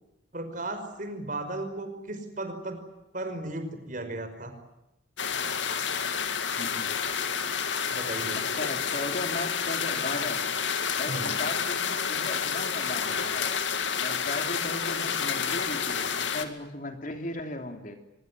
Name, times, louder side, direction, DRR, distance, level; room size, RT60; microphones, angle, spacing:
voice 1, 0.3-2.8 3.1-4.5 7.9-8.4 11.1-11.3, right 2 dB, 45° right, 8 dB, 5.5 m, -35 dB
sound 1, 5.2-16.5, left 6 dB, 75° left, 2.4 m, -29 dB
voice 2, 6.6-6.9 8.3-10.4 11.0-13.6 14.0-18.0, left 2 dB, 45° left, 6 dB, 3.2 m, -37 dB
24.5 x 22.5 x 9.9 m, 0.90 s
head